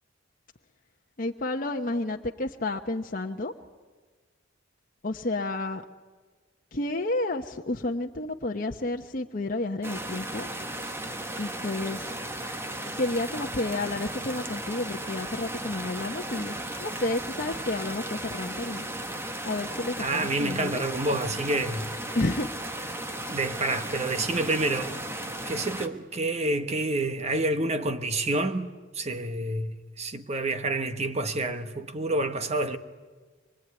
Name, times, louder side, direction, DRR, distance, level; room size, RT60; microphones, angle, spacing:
voice 1, 1.2-3.5 5.0-5.8 6.7-10.5 11.4-12.1 13.0-18.9 19.4-20.8 22.1-22.5, left 2 dB, 45° left, 1.0 m, -31 dB
sound 1, 9.8-25.9, right 1 dB, 15° right, 1.4 m, -35 dB
voice 2, 20.0-21.9 23.3-25.0 25.5-28.7 28.9-32.8, right 2 dB, 35° right, 1.3 m, -28 dB
24.5 x 23.5 x 9.6 m
head